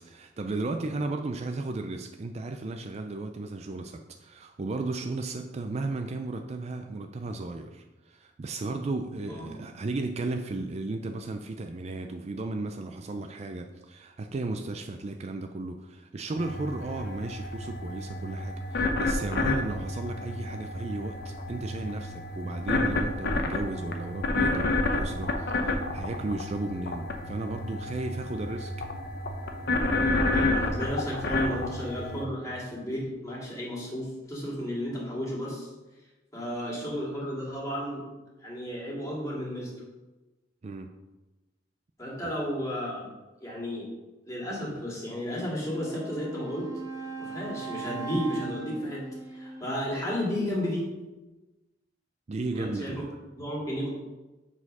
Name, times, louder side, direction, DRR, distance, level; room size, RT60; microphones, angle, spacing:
voice 1, 0.0-28.7 40.6-40.9 42.2-42.3 52.3-53.1, right 2 dB, 35° right, 5 dB, 0.4 m, -34 dB
sound 1, 16.4-32.3, left 2 dB, 60° left, 0.8 m, -30 dB
voice 2, 30.3-35.7 36.3-38.0 38.4-39.7 42.0-43.1 43.4-43.9 44.3-46.7 47.2-49.0 49.3-50.9 52.5-53.1 53.4-53.9, equal, 20° left, -5 dB, 2.4 m, -33 dB
Wind instrument woodwind instrument, 45.6-50.5, right 4 dB, 15° right, 1.0 m, -40 dB
7.2 x 4.2 x 5.4 m, 1.1 s
head